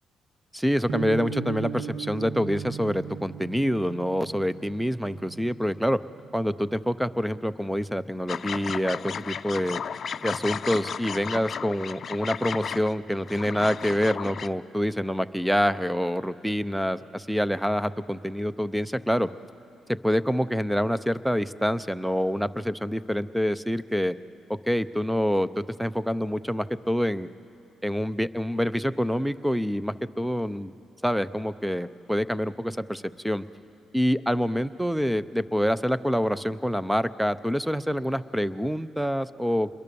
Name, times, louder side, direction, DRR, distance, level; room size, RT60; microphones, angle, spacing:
voice 1, 0.5-6.0 6.3-9.8 10.2-19.3 19.9-24.1 24.5-27.3 27.8-30.7 31.0-33.4 33.9-39.7, equal, 5° right, 15 dB, 0.6 m, -26 dB
sound 1, 0.9-7.0, right 6 dB, 80° right, 2.2 m, -38 dB
sound 2, 8.3-14.5, left 7 dB, 50° left, 0.5 m, -34 dB
27.5 x 22.0 x 7.0 m, 2.9 s
cardioid pair, 90°, 0 cm